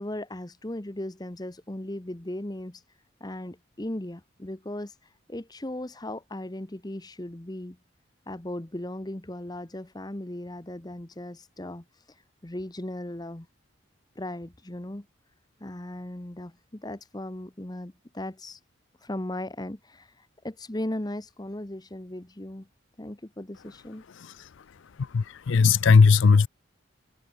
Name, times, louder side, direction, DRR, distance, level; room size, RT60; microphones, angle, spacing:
voice 1, 0.0-2.8 3.2-7.8 8.3-13.5 14.2-15.1 15.6-18.6 19.0-22.7 23.0-24.0, left 1 dB, 20° left, 1.0 m, -37 dB
voice 2, 25.1-26.5, left 5 dB, 65° left, 0.5 m, -17 dB
head